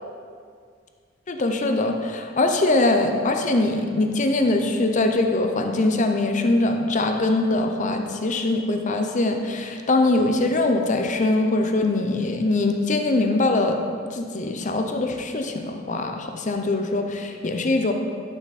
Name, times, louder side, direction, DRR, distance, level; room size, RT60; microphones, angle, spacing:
voice 1, 1.3-13.8 14.1-17.9, left 2 dB, 40° left, 4 dB, 0.6 m, -22 dB
12.0 x 5.8 x 4.2 m, 2.1 s
head